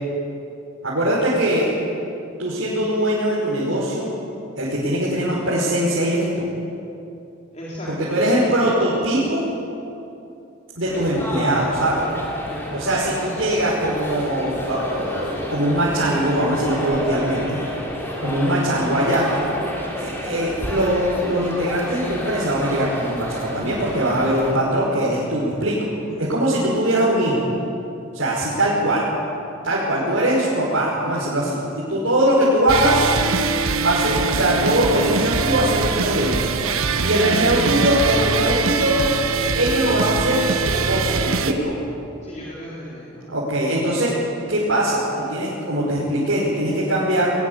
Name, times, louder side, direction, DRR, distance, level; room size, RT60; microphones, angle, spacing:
voice 1, 0.8-1.7 2.4-4.1 4.6-6.5 7.9-9.5 10.8-12.0 12.7-17.6 18.2-19.3 20.0-25.8 26.2-27.4 28.1-29.0 29.6-33.1 33.8-36.4 37.0-39.0 39.6-41.8 43.3-44.1 44.5-47.3, right 1 dB, 65° right, -7 dB, 5.2 m, -21 dB
voice 2, 7.5-8.2 12.5-12.7 15.8-15.9 18.0-18.6 37.3-37.7 42.2-43.2, equal, 30° left, -7 dB, 4.2 m, -37 dB
sound 1, 10.8-24.5, equal, 10° left, 3.7 m, -31 dB
sound 2, 32.7-41.5, right 4 dB, 90° right, 1.3 m, -22 dB
21.0 x 21.0 x 8.3 m, 2.7 s
head